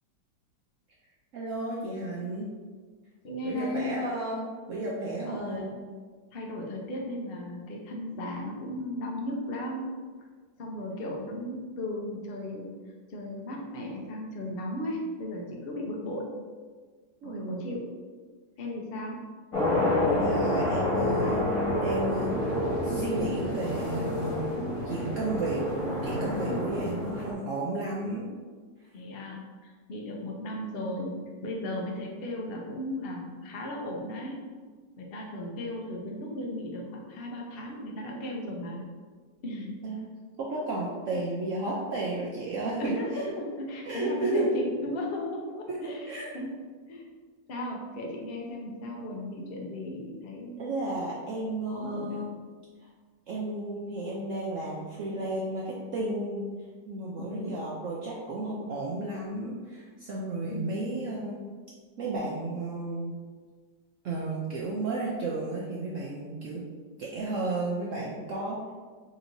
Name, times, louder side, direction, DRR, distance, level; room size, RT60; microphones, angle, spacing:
voice 1, 1.3-2.5 3.4-5.7 17.2-17.7 20.0-21.5 21.8-22.4 22.8-24.4 24.8-25.6 26.0-28.3 39.8-40.1 40.4-42.9 43.8-44.5 45.7-46.4 50.6-52.3 53.3-56.5 56.9-61.4 62.0-63.2 64.0-66.6 67.0-68.7, right 2 dB, 70° right, -4 dB, 0.7 m, -33 dB
voice 2, 3.2-3.9 5.2-5.8 6.3-9.9 10.6-12.7 13.1-16.3 17.2-17.9 18.6-19.2 26.4-26.8 28.9-34.4 35.0-38.8 39.4-39.8 41.1-41.2 42.8-46.1 46.3-46.5 46.9-47.0 47.5-50.9 51.7-52.4 57.2-57.6 60.5-60.8, left 1 dB, 65° left, -1 dB, 0.5 m, -36 dB
sound 1, 19.5-27.3, left 1 dB, 85° left, 2.1 m, -28 dB
5.1 x 2.9 x 2.6 m, 1.5 s
omnidirectional pair, 1.9 m